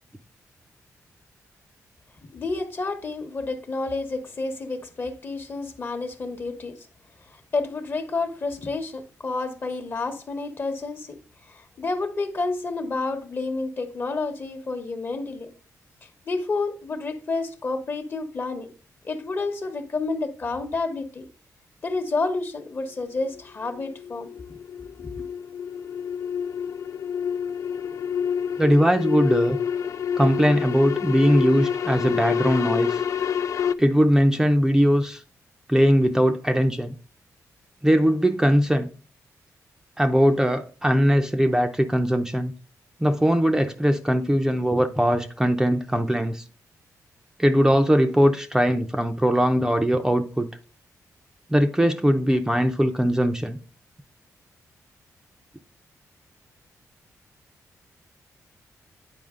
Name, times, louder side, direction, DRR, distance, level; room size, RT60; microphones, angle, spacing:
voice 1, 2.3-6.8 7.3-11.2 11.5-15.5 16.3-18.7 19.0-21.3 21.8-24.3 25.0-25.1, left 3 dB, 35° left, 1.0 m, -29 dB
sound 1, 23.2-33.7, left 8 dB, 60° left, 0.4 m, -28 dB
voice 2, 28.6-29.6 30.2-33.0 33.8-35.2 35.7-36.9 37.8-38.9 40.0-42.5 43.0-46.4 47.4-50.5 51.5-53.6, equal, 10° right, 0.5 m, -20 dB
9.3 x 4.8 x 3.6 m
wide cardioid pair, 130°, 6 cm